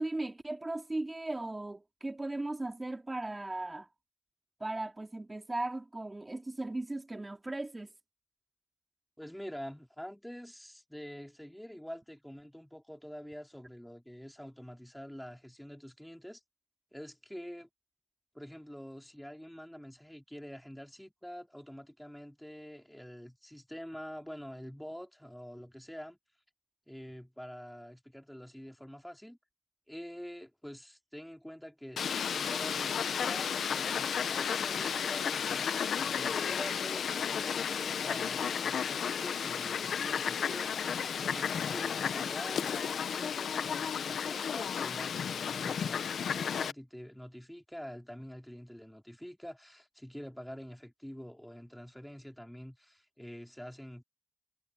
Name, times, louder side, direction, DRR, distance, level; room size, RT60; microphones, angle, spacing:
voice 1, 0.0-3.9 4.6-7.9, right 2 dB, 25° right, 3.2 m, -37 dB
voice 2, 9.2-16.4 16.9-17.7 18.3-26.2 26.9-29.4 29.9-54.0, equal, 5° left, 2.9 m, -46 dB
Fowl, 32.0-46.7, left 7 dB, 85° left, 1.1 m, -33 dB
cardioid pair, 50°, 0 cm